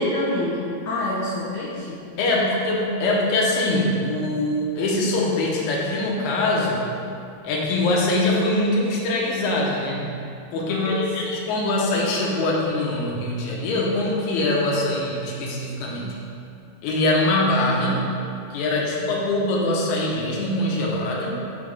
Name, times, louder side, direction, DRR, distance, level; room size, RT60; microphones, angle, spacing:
voice 1, 0.0-2.1 10.7-11.4, left 1 dB, 90° left, -8 dB, 1.2 m, -28 dB
voice 2, 2.2-6.8 7.4-10.1 10.5-16.2 16.8-18.1 18.5-21.4, left 2 dB, 70° left, -3 dB, 2.1 m, -23 dB
5.7 x 3.4 x 5.2 m, 2.5 s
omnidirectional pair, 3.6 m